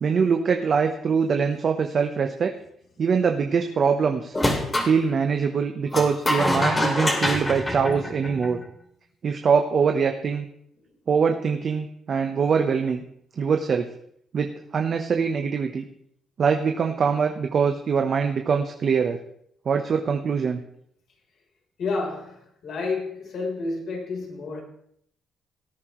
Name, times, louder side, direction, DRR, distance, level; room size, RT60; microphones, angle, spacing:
voice 1, 0.0-2.5 3.0-4.4 4.8-8.6 9.2-10.4 11.1-13.0 13.4-13.9 14.3-15.8 16.4-19.2 19.6-20.6, right 6 dB, 50° right, 5 dB, 1.0 m, -23 dB
sound 1, 4.3-4.9 5.9-8.6, left 1 dB, 20° left, 2.7 m, -25 dB
voice 2, 21.8-24.6, left 3 dB, 65° left, 0 dB, 4.0 m, -30 dB
18.0 x 9.7 x 3.2 m, 0.68 s
cardioid pair, 90°, 0 cm